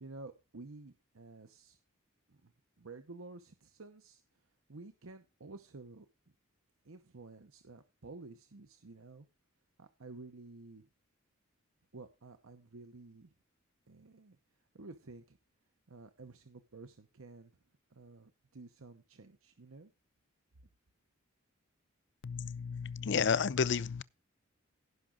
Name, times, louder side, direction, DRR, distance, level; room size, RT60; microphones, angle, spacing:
voice 1, 0.0-1.8 2.3-4.2 4.7-6.1 6.8-9.3 9.8-10.9 11.9-13.3 13.9-14.4 14.7-15.4 15.9-17.5 17.9-19.9, right 3 dB, 80° right, 0.9 m, -52 dB
voice 2, 22.2-24.0, left 6 dB, 60° left, 0.5 m, -31 dB
16.5 x 5.9 x 3.9 m
head